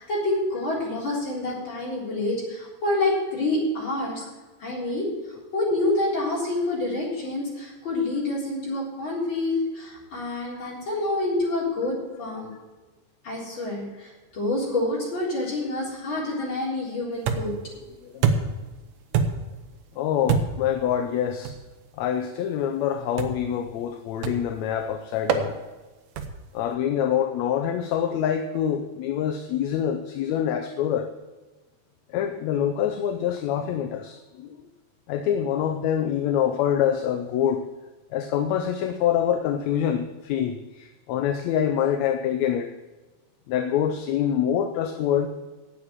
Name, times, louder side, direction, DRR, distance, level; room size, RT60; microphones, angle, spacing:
voice 1, 0.0-4.2 4.6-5.1 5.5-12.5 13.2-13.9 14.3-17.5, left 2 dB, 40° left, -5 dB, 4.5 m, -27 dB
sound 1, 17.3-17.7 18.2-18.7 19.1-19.6 20.3-20.7 21.4-21.7 23.2-23.5 24.2-24.6 25.3-25.5 26.2-26.5, right 6 dB, 75° right, 2.1 m, -25 dB
voice 2, 20.0-21.6 22.0-25.6 26.5-31.1 32.1-34.6 35.1-37.7 38.1-42.7 43.5-45.3, left 9 dB, 75° left, 6 dB, 1.9 m, -25 dB
9.6 x 8.4 x 7.3 m, 1.2 s
omnidirectional pair, 3.4 m